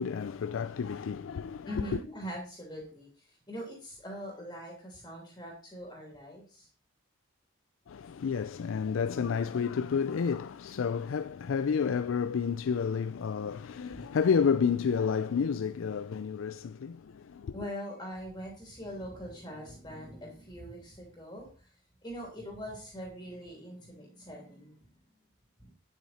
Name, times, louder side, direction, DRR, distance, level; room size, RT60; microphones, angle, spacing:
voice 1, 0.0-2.0 7.9-17.6, left 6 dB, 80° left, 0.4 m, -30 dB
voice 2, 1.6-6.7 17.5-21.5 22.0-24.8 25.6-25.7, equal, 20° left, 2.9 m, -42 dB
9.3 x 8.0 x 4.2 m
head